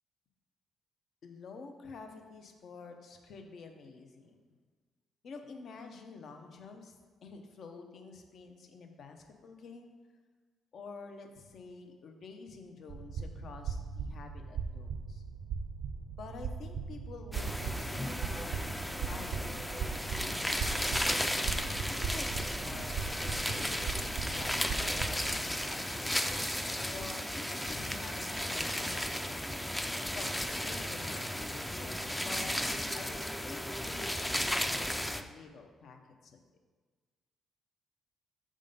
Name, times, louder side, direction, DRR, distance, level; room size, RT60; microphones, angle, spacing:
voice 1, 1.2-4.5 5.2-7.0 7.2-9.9 10.7-15.2 16.2-19.5 20.0-26.0 26.7-29.7 30.1-30.3 30.6-32.5 32.9-36.4, left 4 dB, 60° left, 5 dB, 0.8 m, -49 dB
sound 1, 12.9-25.4, right 6 dB, 70° right, 0.6 m, -39 dB
sound 2, 17.3-35.2, equal, 5° left, 0.4 m, -34 dB
6.6 x 3.8 x 5.3 m, 1.4 s
cardioid pair, 90°, 0 cm